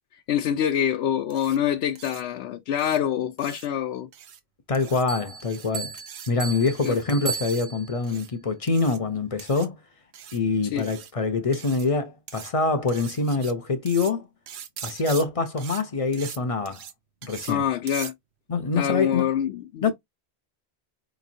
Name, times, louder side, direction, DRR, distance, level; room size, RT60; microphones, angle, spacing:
voice 1, 0.3-4.1 6.8-7.0 10.7-10.9 17.5-18.1 18.8-19.9, left 9 dB, 80° left, 0.8 m, -25 dB
sound 1, 1.3-1.6 1.9-2.2 2.8-3.0 3.4-3.7 4.1-4.4 4.7-5.0 5.4-5.7 6.0-6.3 6.7-7.0 7.3-7.7 8.0-8.3 8.7-9.0 9.4-9.7 10.1-10.4 10.8-11.1 11.5-11.9 12.3-12.5 12.9-13.5 13.9-14.1 14.5-15.2 15.6-15.8 16.1-16.4 16.6-16.9 17.2-17.5 17.9-18.1, right 9 dB, 80° right, 0.9 m, -41 dB
voice 2, 4.7-5.9 6.3-9.8 10.3-14.3 14.8-16.8 17.2-17.7 18.5-19.3 19.8-19.9, left 3 dB, 40° left, 0.6 m, -25 dB
sound 2, 5.1-8.1, right 6 dB, 35° right, 0.6 m, -36 dB
4.6 x 3.0 x 2.6 m
omnidirectional pair, 1.1 m